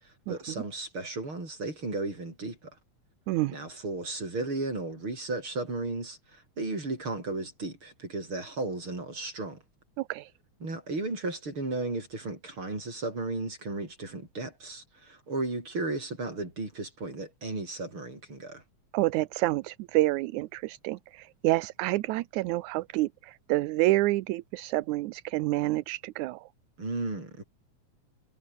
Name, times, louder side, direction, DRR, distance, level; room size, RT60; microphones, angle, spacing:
voice 1, 0.0-2.7 3.5-9.6 10.6-18.6 26.8-27.4, right 2 dB, 40° right, 8.7 m, -35 dB
voice 2, 10.0-10.3 18.9-26.5, right 18 dB, 80° right, 2.1 m, -28 dB
omnidirectional pair, 3.5 m